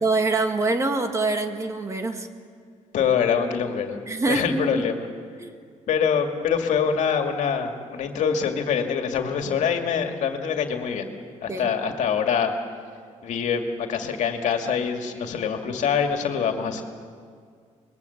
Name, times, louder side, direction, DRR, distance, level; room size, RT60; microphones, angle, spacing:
voice 1, 0.0-2.3 4.1-4.9 5.4-5.5 11.5-11.7, right 3 dB, 20° right, 6 dB, 1.7 m, -25 dB
voice 2, 2.9-4.0 4.3-5.0 5.9-11.1 11.4-12.5 13.2-16.8, left 7 dB, 70° left, 5 dB, 2.2 m, -24 dB
25.5 x 21.5 x 7.2 m, 2.1 s
cardioid pair, 140°, 13 cm